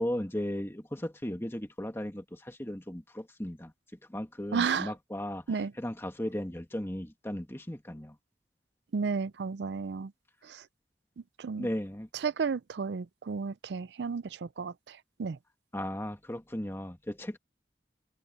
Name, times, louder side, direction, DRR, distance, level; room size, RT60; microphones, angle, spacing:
voice 1, 0.0-3.7 4.1-8.2 11.6-12.1 15.7-17.4, left 1 dB, 15° left, 1.6 m, -36 dB
voice 2, 4.5-4.9 5.5-5.7 8.9-10.1 10.4-10.6 11.4-11.7 12.2-15.4, right 5 dB, 70° right, 0.4 m, -33 dB
head